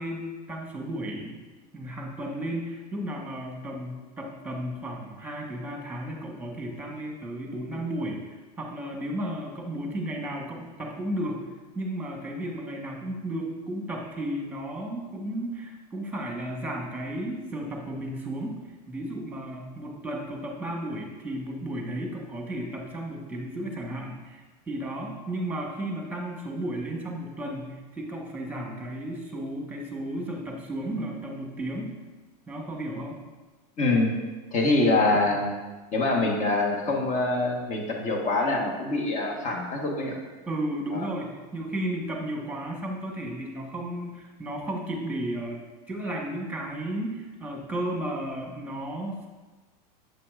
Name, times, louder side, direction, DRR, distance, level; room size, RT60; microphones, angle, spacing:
voice 1, 0.0-1.4 1.7-11.5 11.7-32.0 32.5-33.2 35.1-35.4 40.5-45.6 45.9-49.3, right 1 dB, 10° right, 0 dB, 1.3 m, -34 dB
voice 2, 33.8-34.1 34.5-35.5 35.9-40.2 40.9-41.1, left 2 dB, 35° left, 1 dB, 1.3 m, -25 dB
7.7 x 5.8 x 2.5 m, 1.2 s
supercardioid pair, 110°, 20 cm